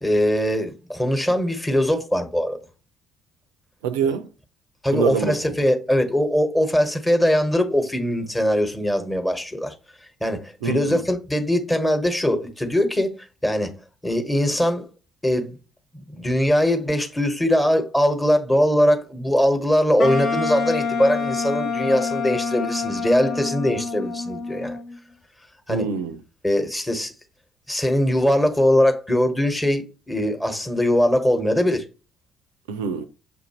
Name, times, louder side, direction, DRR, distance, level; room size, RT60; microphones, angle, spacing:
voice 1, 0.0-2.6 4.8-9.7 10.2-13.1 13.4-13.7 14.0-14.9 15.2-15.6 15.9-24.8 25.7-25.9 26.4-27.1 27.7-31.8, equal, 15° left, 1.1 m, -21 dB
voice 2, 3.8-4.3 4.9-5.4 10.6-11.0 25.7-26.2 32.7-33.1, right 6 dB, 75° right, 0.3 m, -25 dB
Wind instrument woodwind instrument, 20.0-25.0, left 4 dB, 55° left, 1.1 m, -27 dB
6.5 x 2.6 x 2.9 m
figure-of-eight pair, 50°, 0 cm